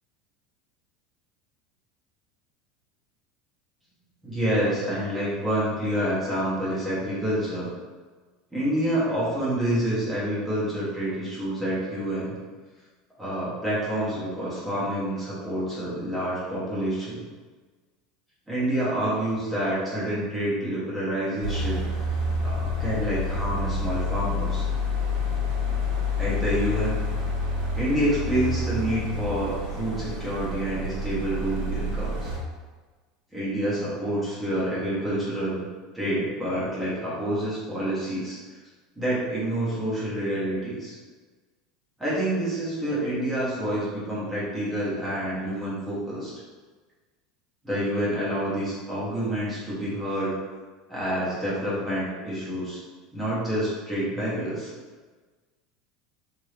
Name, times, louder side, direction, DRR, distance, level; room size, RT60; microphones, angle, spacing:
voice 1, 4.2-7.7 8.5-12.3 13.2-17.2 18.5-21.9 22.4-24.6 26.2-27.0 27.7-32.3 33.3-35.7 35.9-38.4 39.0-40.9 42.0-46.3 47.6-50.3 50.9-52.8 53.1-54.7, right 1 dB, 5° right, -9 dB, 1.0 m, -28 dB
sound 1, 21.4-32.4, left 2 dB, 90° right, 1.3 m, -28 dB
3.0 x 2.6 x 3.2 m, 1.4 s
supercardioid pair, 165°, 0 cm